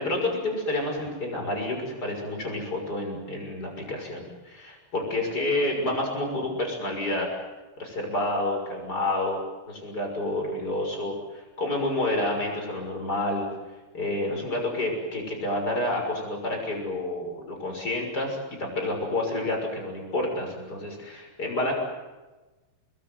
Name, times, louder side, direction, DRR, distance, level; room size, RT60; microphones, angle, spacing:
voice 1, 0.0-7.3 7.8-9.4 9.7-13.5 13.9-21.7, left 1 dB, 20° left, 2 dB, 6.6 m, -29 dB
27.5 x 21.0 x 9.4 m, 1.2 s
omnidirectional pair, 5.4 m